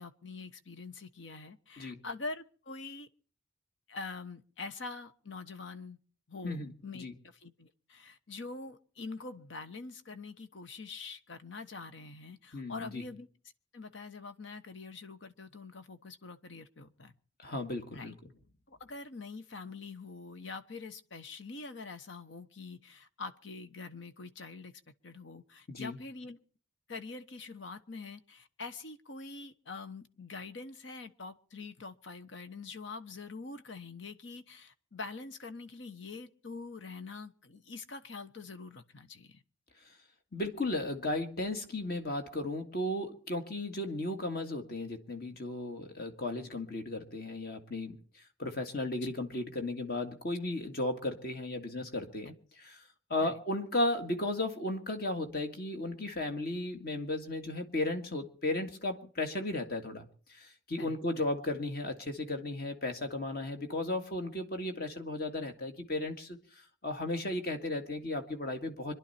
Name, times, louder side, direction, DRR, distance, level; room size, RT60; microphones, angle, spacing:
voice 1, 0.0-3.1 3.9-6.0 6.3-13.3 13.7-17.1 17.9-18.1 18.7-26.4 26.9-39.4 49.0-49.1 53.2-53.3 60.8-61.2, left 3 dB, 70° left, 1.1 m, -45 dB
voice 2, 12.5-13.0 17.4-18.1 25.7-26.0 40.3-52.8 53.1-68.9, left 2 dB, 50° left, 1.9 m, -35 dB
25.5 x 11.0 x 4.3 m
head